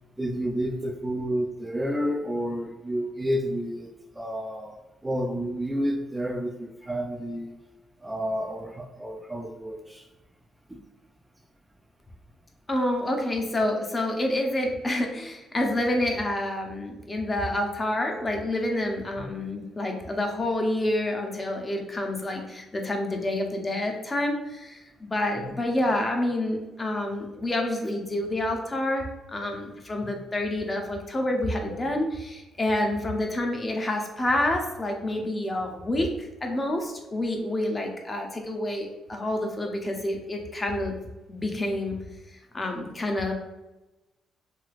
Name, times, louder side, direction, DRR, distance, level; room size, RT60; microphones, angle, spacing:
voice 1, 0.2-3.9 4.2-4.8 5.0-7.5 8.0-10.0 10.7-10.8 19.2-19.3 30.1-30.2, equal, 15° right, 1 dB, 0.3 m, -30 dB
voice 2, 12.7-40.9 41.3-42.0 42.5-43.3, left 1 dB, 25° left, 2 dB, 0.6 m, -28 dB
3.0 x 2.8 x 2.4 m, 1.0 s
cardioid pair, 90°, 0 cm